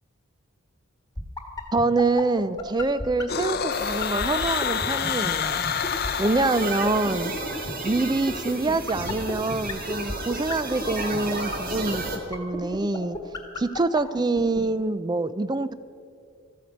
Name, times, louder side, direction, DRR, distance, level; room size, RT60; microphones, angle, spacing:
sound 1, 1.2-14.6, left 2 dB, 15° left, 1.6 m, -31 dB
voice 1, 1.7-5.6 6.2-7.3 7.8-12.0 12.3-13.2 13.5-15.7, right 3 dB, 20° right, 15 dB, 0.4 m, -25 dB
sound 2, 3.3-7.3, left 8 dB, 45° left, 0.6 m, -28 dB
sound 3, 3.7-12.2, right 2 dB, 40° right, 1.8 m, -34 dB
13.5 x 9.4 x 7.9 m, 2.4 s
head